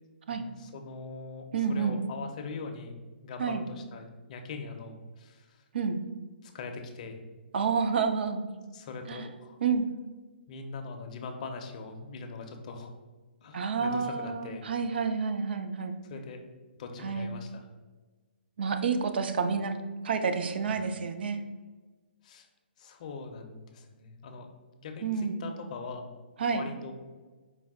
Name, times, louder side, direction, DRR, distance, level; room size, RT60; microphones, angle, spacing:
voice 1, 0.3-5.6 6.4-7.2 8.7-9.6 10.5-12.9 13.4-14.7 16.0-16.4 16.8-17.7 20.7-20.9 22.2-22.5 22.8-24.5 24.8-26.1 26.5-26.9, left 4 dB, 40° left, 5 dB, 0.5 m, -42 dB
voice 2, 1.5-2.0 3.4-3.6 5.7-6.0 7.5-8.4 9.1-9.2 9.6-9.9 13.5-15.9 17.0-17.3 18.6-19.8 20.0-21.4 25.0-25.4 26.4-26.6, right 5 dB, 65° right, 8 dB, 0.4 m, -29 dB
4.6 x 2.1 x 3.5 m, 1.3 s
hypercardioid pair, 160°, 6 cm